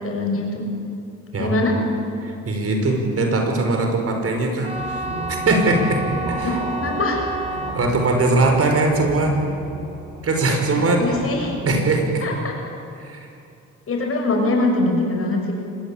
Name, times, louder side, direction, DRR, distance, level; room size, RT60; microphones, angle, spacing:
voice 1, 0.0-0.7 1.4-1.7 6.4-7.2 11.0-11.5 12.2-12.6 13.9-15.5, left 2 dB, 50° left, 2 dB, 6.7 m, -22 dB
voice 2, 1.3-1.7 2.2-6.0 6.3-6.6 7.7-9.4 10.2-11.0 11.6-12.3 13.0-13.3, right 2 dB, 50° right, 3 dB, 5.4 m, -21 dB
sound 1, 4.6-10.8, right 2 dB, 20° right, 4.5 m, -31 dB
sound 2, 4.7-11.8, right 2 dB, 70° right, 6.5 m, -34 dB
24.5 x 20.0 x 8.8 m, 2.6 s
cardioid pair, 90°, 30 cm